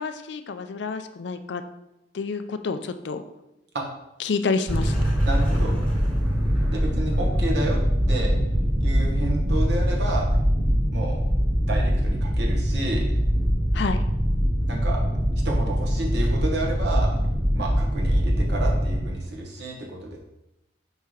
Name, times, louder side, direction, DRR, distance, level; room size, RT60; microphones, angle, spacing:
voice 1, 0.0-1.6 2.1-3.2 4.2-5.0 13.7-14.0, left 4 dB, 60° left, 9 dB, 0.4 m, -28 dB
sound 1, 4.7-19.0, equal, 25° right, 2.0 m, -23 dB
voice 2, 5.2-5.7 6.7-7.8 8.1-8.3 8.8-10.3 10.9-11.2 11.6-13.0 14.7-15.0 15.4-17.1 17.5-20.2, right 2 dB, 60° right, -1 dB, 1.3 m, -30 dB
5.7 x 5.5 x 3.2 m, 0.90 s
head